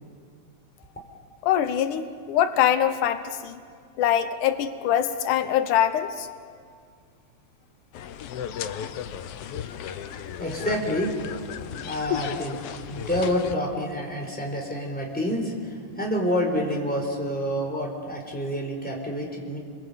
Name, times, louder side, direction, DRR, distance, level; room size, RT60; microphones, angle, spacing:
voice 1, 1.4-3.6 4.0-6.3 8.5-8.9, left 10 dB, 90° left, 10 dB, 2.5 m, -24 dB
sound 1, 7.9-13.6, left 9 dB, 70° left, 1.5 m, -34 dB
voice 2, 9.8-11.1 11.8-12.6 12.9-19.6, equal, 5° left, 0 dB, 4.0 m, -28 dB
29.5 x 22.5 x 8.2 m, 2.1 s
omnidirectional pair, 3.5 m